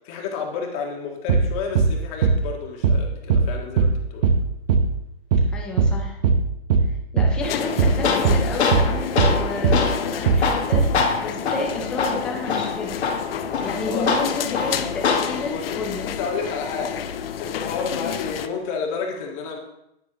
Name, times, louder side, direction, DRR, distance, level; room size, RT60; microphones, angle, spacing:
voice 1, 0.0-4.3 13.8-14.1 15.5-15.8 16.0-17.1 17.4-19.6, left 5 dB, 30° left, 1 dB, 1.7 m, -30 dB
sound 1, 1.3-1.5 1.8-2.0 2.2-2.4 2.8-3.0 3.3-3.5 3.8-4.0 4.2-4.4 4.7-4.9 5.3-5.5 5.8-6.0 6.2-6.4 6.7-6.9 7.2-7.4 7.8-8.0 8.2-8.4 8.7-8.9 9.2-9.4 9.6-9.8 10.3-10.5 10.7-10.9, right 4 dB, 40° right, 0.9 m, -18 dB
voice 2, 5.5-6.2 6.9-13.0 13.6-16.1, left 2 dB, 5° left, -1 dB, 0.3 m, -31 dB
sound 2, 7.4-18.5, left 8 dB, 60° left, 0.7 m, -31 dB
Tools, 7.5-15.5, left 5 dB, 75° left, 1.3 m, -25 dB
10.0 x 9.4 x 3.0 m, 0.82 s
hypercardioid pair, 145°, 33 cm